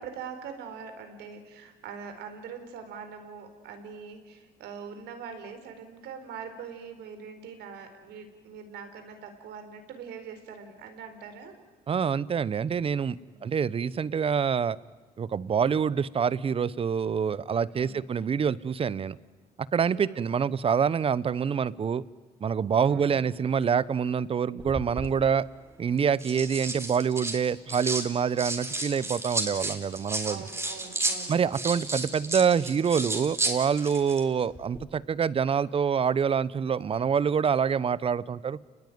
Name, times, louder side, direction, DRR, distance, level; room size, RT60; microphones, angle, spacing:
voice 1, 0.0-11.6 13.3-13.6 17.7-18.1 19.9-20.5 22.8-23.2 30.2-31.4, right 6 dB, 80° right, 7 dB, 4.5 m, -43 dB
voice 2, 11.9-14.8 15.2-19.2 19.7-22.0 22.4-25.4 25.8-30.4 31.3-38.6, right 7 dB, 35° right, 20 dB, 0.8 m, -26 dB
sound 1, 24.6-25.1 26.0-28.1 28.4-34.2 34.5-34.8, right 2 dB, 15° right, 3.7 m, -32 dB
29.5 x 20.5 x 9.4 m, 1.3 s
cardioid pair, 110°, 17 cm